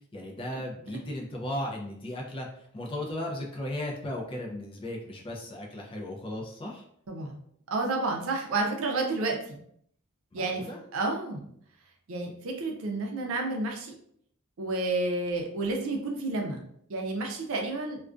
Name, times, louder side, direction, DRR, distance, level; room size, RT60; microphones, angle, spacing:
voice 1, 0.1-6.8 10.3-10.8, left 1 dB, 25° left, -1 dB, 0.4 m, -36 dB
voice 2, 7.1-7.4 7.7-9.6 10.3-10.6 10.9-11.5 12.1-13.9 14.6-16.6 16.9-18.0, right 2 dB, 65° right, 2 dB, 0.5 m, -30 dB
2.3 x 2.2 x 2.4 m, 0.67 s
head